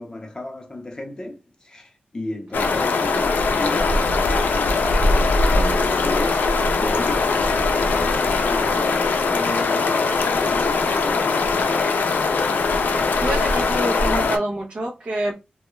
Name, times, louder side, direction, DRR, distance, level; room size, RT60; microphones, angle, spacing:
voice 1, 0.0-6.5 6.8-12.0, left 1 dB, 25° left, 0.6 m, -33 dB
sound 1, 2.5-14.4, left 3 dB, 90° left, 0.4 m, -20 dB
voice 2, 13.2-15.3, right 1 dB, 45° right, 0.5 m, -26 dB
2.2 x 2.1 x 3.0 m
wide cardioid pair, 130°, 3 cm